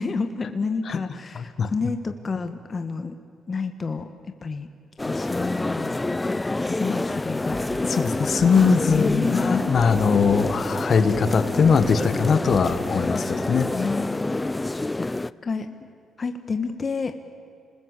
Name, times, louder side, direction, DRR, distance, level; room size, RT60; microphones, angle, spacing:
voice 1, 0.0-3.2 3.5-4.1 4.4-4.7 5.0-7.6 8.9-9.8 13.7-14.5 15.0-15.1 15.4-15.8 16.2-17.2, left 4 dB, 35° left, 7 dB, 1.4 m, -29 dB
voice 2, 1.3-1.7 7.8-13.7, left 5 dB, 50° left, 11 dB, 1.6 m, -21 dB
sound 1, 5.0-15.3, left 2 dB, 15° left, 0.5 m, -27 dB
sound 2, 7.5-13.0, equal, 30° right, 7.0 m, -43 dB
27.5 x 20.5 x 8.3 m, 2.6 s
cardioid pair, 90°, 0 cm